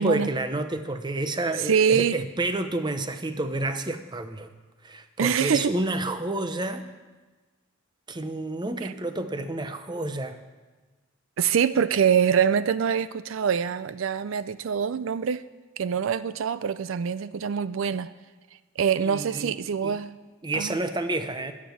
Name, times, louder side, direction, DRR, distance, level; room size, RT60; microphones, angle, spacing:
voice 1, 0.0-4.5 4.8-6.9 8.1-10.4 19.0-19.6 19.8-20.0 20.4-21.5, right 2 dB, 20° right, 9 dB, 0.7 m, -29 dB
voice 2, 1.6-2.2 5.2-5.7 11.4-15.4 15.8-18.1 18.8-20.2 20.5-20.8, right 7 dB, 75° right, 15 dB, 0.4 m, -24 dB
19.5 x 7.4 x 7.2 m, 1.3 s
head